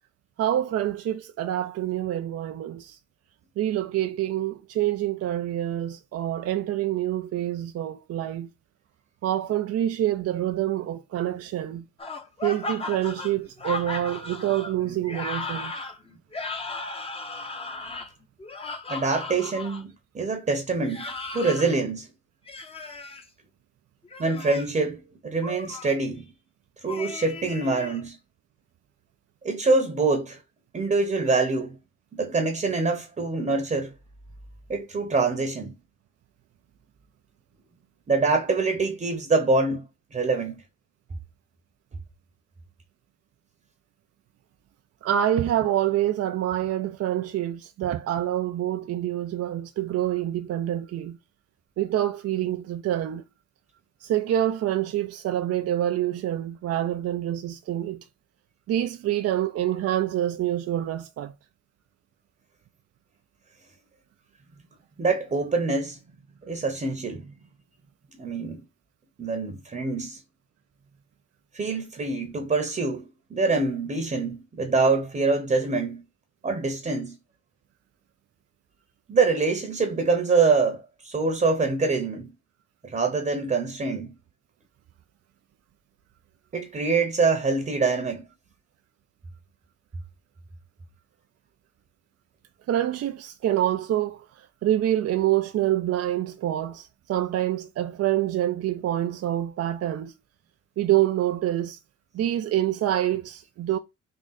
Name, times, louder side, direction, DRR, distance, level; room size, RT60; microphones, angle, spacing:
voice 1, 0.4-3.0 3.6-8.5 9.2-11.8 12.4-15.7 45.0-51.2 51.8-53.2 54.0-58.0 58.7-61.3 92.7-94.3 94.6-100.1 100.8-101.8 102.1-103.8, right 12 dB, 55° right, 0.5 m, -26 dB
sound 1, 12.0-19.8 20.8-21.8 22.5-23.2 24.0-24.8 25.4-26.0 26.9-28.0, left 3 dB, 20° left, 0.7 m, -36 dB
voice 2, 18.9-21.1 21.3-22.1 24.2-26.2 26.8-28.2 29.4-30.4 30.7-31.7 32.1-33.9 34.7-35.7 38.1-40.6 65.0-66.0 66.5-67.3 68.2-68.6 69.2-70.2 71.5-73.0 73.3-76.0 76.4-77.2 79.1-82.3 82.8-84.1 86.5-88.3, right 3 dB, 25° right, 0.9 m, -25 dB
3.7 x 2.4 x 3.9 m
cardioid pair, 90°, 30 cm